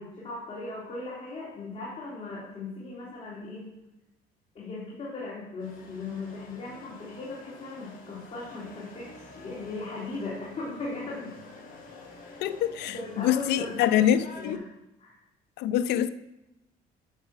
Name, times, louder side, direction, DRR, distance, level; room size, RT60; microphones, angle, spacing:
voice 1, 0.0-3.7 4.5-11.4 12.2-12.6 12.9-14.6 15.0-15.2, left 3 dB, 40° left, 3.1 m, -38 dB
sound 1, 5.6-14.5, left 3 dB, 55° left, 4.2 m, -49 dB
voice 2, 12.4-14.6 15.6-16.1, left 10 dB, 80° left, 0.6 m, -25 dB
11.5 x 7.6 x 5.8 m
cardioid pair, 110°, 17 cm